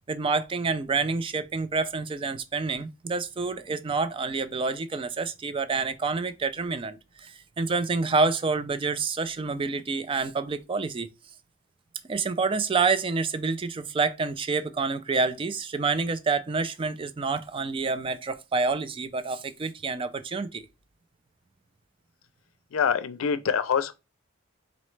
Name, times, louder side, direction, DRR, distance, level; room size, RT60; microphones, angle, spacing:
voice 1, 0.1-11.1 12.0-20.7, right 4 dB, 25° right, 0.3 m, -28 dB
voice 2, 22.7-23.9, left 7 dB, 85° left, 0.4 m, -25 dB
4.0 x 3.1 x 3.1 m
head